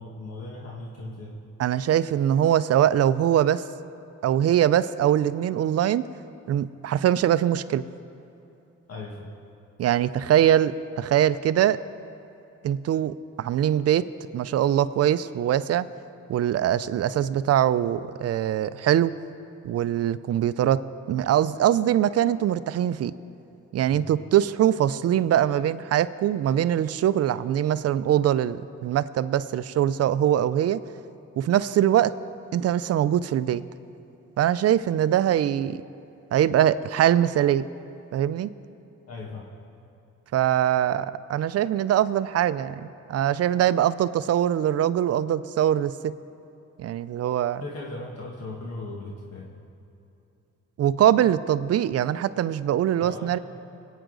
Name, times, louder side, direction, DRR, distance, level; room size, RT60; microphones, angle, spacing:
voice 1, 0.0-1.4 8.9-9.3 23.9-24.1 39.1-39.5 47.6-49.5 53.0-53.4, left 2 dB, 55° left, -2 dB, 1.5 m, -38 dB
voice 2, 1.6-3.6 4.2-6.0 6.5-7.8 9.8-11.8 12.6-14.1 14.3-15.9 16.3-19.1 19.6-20.8 21.1-23.1 23.7-30.8 31.4-32.1 32.5-33.6 34.4-35.8 36.3-37.6 38.1-38.5 40.3-46.1 46.8-47.6 50.8-53.4, right 11 dB, 55° right, 15 dB, 0.5 m, -22 dB
21.0 x 9.1 x 3.9 m, 2.9 s
cardioid pair, 90°, 30 cm